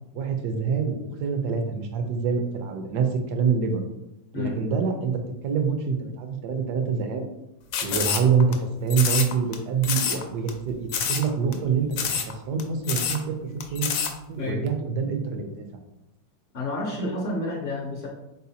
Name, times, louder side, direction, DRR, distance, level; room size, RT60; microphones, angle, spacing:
voice 1, 0.1-3.8 4.3-5.1 5.4-7.2 7.8-11.9 12.3-13.4 13.7-13.9 14.3-15.6, right 6 dB, 70° right, 5 dB, 1.2 m, -25 dB
sound 1, 7.7-8.6 8.9-9.6 9.8-10.2 10.5-10.6 10.9-11.3 11.5-11.6 11.9-12.3 12.6-12.7 12.9-13.2 13.6-14.1, left 7 dB, 85° left, 1.3 m, -26 dB
voice 2, 16.5-18.1, left 2 dB, 50° left, -3 dB, 0.7 m, -30 dB
4.3 x 4.1 x 2.7 m, 0.89 s
omnidirectional pair, 1.9 m